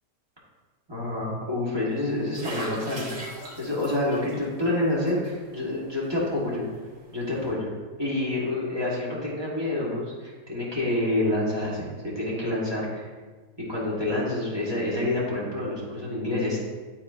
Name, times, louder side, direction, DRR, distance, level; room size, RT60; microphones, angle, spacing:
voice 1, 0.9-3.1 3.6-6.6 7.1-13.0 13.7-16.6, left 1 dB, 15° right, -7 dB, 1.6 m, -28 dB
sound 1, 1.9-7.5, right 1 dB, 75° right, 2.0 m, -41 dB
10.5 x 4.1 x 2.7 m, 1.4 s
omnidirectional pair, 1.8 m